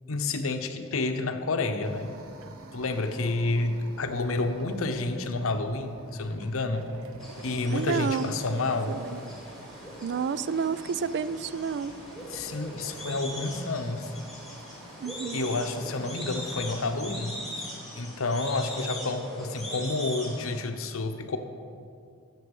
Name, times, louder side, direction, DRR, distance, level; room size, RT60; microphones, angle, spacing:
voice 1, 0.1-2.2 2.7-6.9 7.4-9.0 12.3-14.1 15.3-17.4 18.0-21.4, left 3 dB, 70° left, 7 dB, 0.8 m, -29 dB
sound 1, 1.8-17.3, right 2 dB, 85° right, 0.9 m, -49 dB
sound 2, 7.2-20.6, equal, ahead, 2.4 m, -41 dB
voice 2, 7.7-8.4 8.9-9.2 10.0-11.9 15.0-15.5, right 6 dB, 55° right, 15 dB, 0.3 m, -30 dB
11.0 x 7.6 x 5.4 m, 2.4 s
head